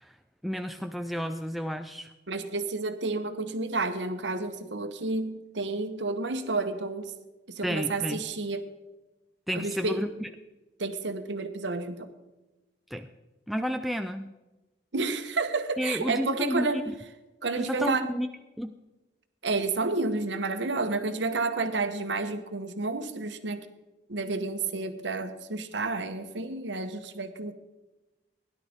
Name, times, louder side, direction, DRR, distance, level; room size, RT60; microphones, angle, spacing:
voice 1, 0.4-2.1 7.6-8.2 9.5-10.3 12.9-13.1 13.5-14.3 15.8-16.9 17.6-18.3 18.6-18.8, equal, ahead, 6 dB, 0.4 m, -31 dB
voice 2, 2.3-7.1 7.6-8.7 9.5-10.0 10.8-12.1 14.9-16.8 17.4-18.0 19.4-23.7 24.1-27.5, right 3 dB, 85° right, 8 dB, 1.1 m, -30 dB
17.0 x 11.0 x 3.6 m, 1.1 s
head